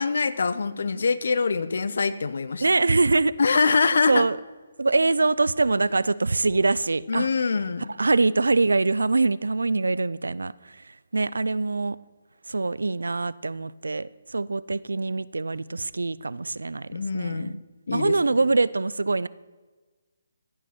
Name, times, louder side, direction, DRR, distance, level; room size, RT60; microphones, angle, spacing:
voice 1, 0.0-2.6 3.4-4.2 7.1-7.9 16.9-17.6 17.9-18.2, left 4 dB, 65° left, 14 dB, 0.9 m, -24 dB
voice 2, 2.6-3.3 4.1-4.4 4.8-7.3 7.9-12.0 12.5-17.6 17.9-19.3, right 3 dB, 80° right, 20 dB, 0.5 m, -24 dB
15.0 x 9.2 x 6.0 m, 1.3 s
figure-of-eight pair, 145°, 0 cm